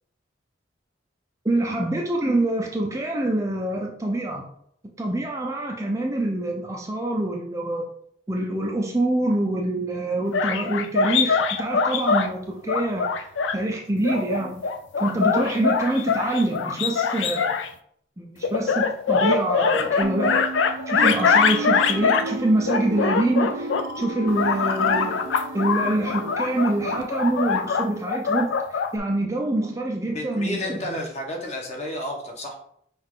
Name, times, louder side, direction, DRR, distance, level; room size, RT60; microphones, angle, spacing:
voice 1, 1.4-4.5 5.0-7.8 8.3-13.1 13.5-14.6 15.0-17.5 18.2-20.4 20.9-23.7 24.0-25.2 25.5-31.0, right 1 dB, 15° right, 1 dB, 0.4 m, -25 dB
sound 1, 10.3-12.3 12.7-13.6 14.0-17.7 18.4-22.3 22.7-23.9 24.3-29.0, left 5 dB, 70° left, 0.4 m, -23 dB
sound 2, 20.0-27.0, right 3 dB, 75° right, 0.6 m, -33 dB
voice 2, 30.1-32.5, left 1 dB, 35° left, 1 dB, 0.9 m, -31 dB
5.5 x 2.4 x 3.6 m, 0.68 s
head